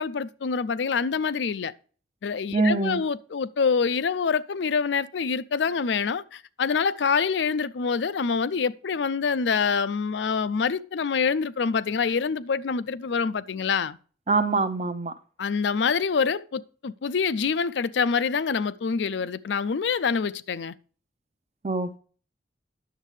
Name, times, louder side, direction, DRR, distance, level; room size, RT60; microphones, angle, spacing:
voice 1, 0.0-1.7 2.2-14.0 15.4-20.7, left 5 dB, 85° left, 0.5 m, -26 dB
voice 2, 2.5-3.0 14.3-15.1 21.6-22.0, right 3 dB, 35° right, 0.6 m, -24 dB
10.0 x 7.3 x 3.2 m
head